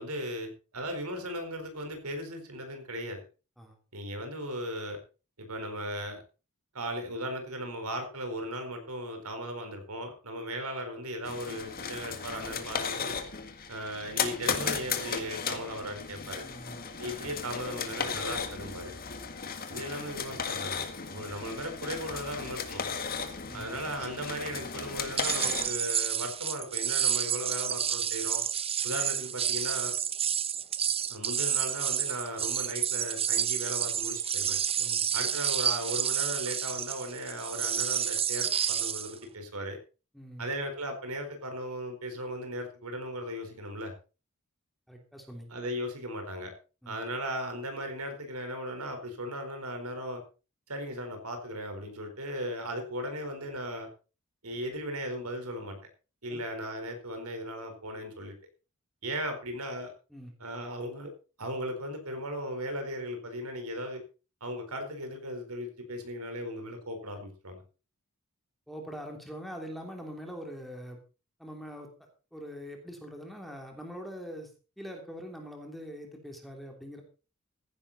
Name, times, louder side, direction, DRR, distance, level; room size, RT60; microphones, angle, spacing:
voice 1, 0.0-3.2 3.9-5.0 5.4-6.2 6.7-13.2 13.7-16.4 17.0-18.9 19.7-22.8 23.5-28.4 28.8-29.9 31.1-34.6 35.1-39.8 40.4-43.9 45.5-46.5 46.9-50.2 50.7-53.9 54.4-55.8 56.2-58.3 59.0-59.9 60.4-61.1 61.4-64.0 64.4-67.6, equal, 85° right, 6 dB, 4.4 m, -37 dB
sound 1, 11.3-25.7, left 6 dB, 45° left, 1.8 m, -35 dB
voice 2, 16.4-16.8 23.5-23.7 34.8-35.1 40.1-40.5 44.9-45.5 46.8-47.0 56.3-56.4 60.1-60.3 68.7-71.0 71.4-74.5 74.8-77.0, equal, ahead, 2 dB, 3.1 m, -43 dB
sound 2, 25.2-39.1, right 9 dB, 25° right, 0.7 m, -30 dB
15.0 x 10.5 x 4.2 m, 0.33 s
head